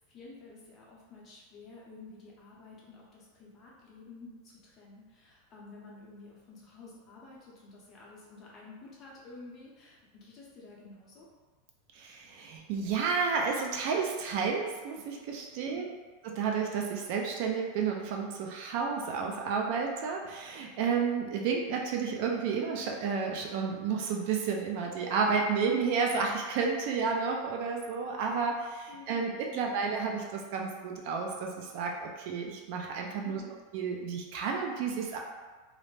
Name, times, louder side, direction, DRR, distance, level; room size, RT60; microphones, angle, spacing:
voice 1, 0.1-11.3 15.6-15.9 28.9-29.8 33.2-33.6, left 3 dB, 25° left, -5 dB, 0.6 m, -51 dB
voice 2, 12.0-15.9 16.2-33.4 33.7-35.2, right 5 dB, 50° right, 1 dB, 0.3 m, -31 dB
2.4 x 2.1 x 3.1 m, 1.4 s
supercardioid pair, 165°, 0 cm